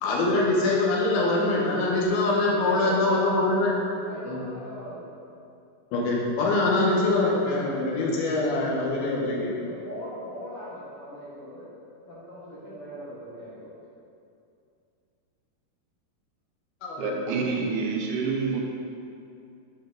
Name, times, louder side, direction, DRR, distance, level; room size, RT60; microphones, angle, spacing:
voice 1, 0.0-3.7 4.2-4.4 5.9-9.5 16.8-17.1, left 2 dB, 85° left, -3 dB, 2.9 m, -24 dB
voice 2, 2.5-3.4 4.1-5.1 9.2-11.7 12.1-13.7, equal, 50° left, -9 dB, 1.9 m, -40 dB
voice 3, 17.0-18.6, right 4 dB, 90° right, 0 dB, 2.8 m, -27 dB
7.9 x 5.2 x 3.8 m, 2.6 s
omnidirectional pair, 4.3 m